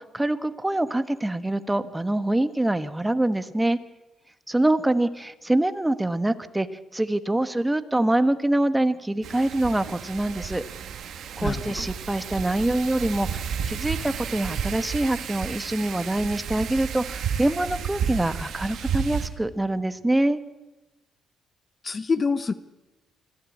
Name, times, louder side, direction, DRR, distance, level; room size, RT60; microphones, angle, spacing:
voice 1, 0.0-3.8 4.5-6.7 6.9-10.6 11.4-20.4, right 1 dB, 10° right, 11 dB, 1.3 m, -25 dB
Wind, 9.2-19.3, right 7 dB, 70° right, 2.0 m, -32 dB
voice 2, 11.4-11.9 21.8-22.5, left 4 dB, 35° left, 14 dB, 1.0 m, -26 dB
25.0 x 15.0 x 8.5 m, 1.0 s
cardioid pair, 90°, 0 cm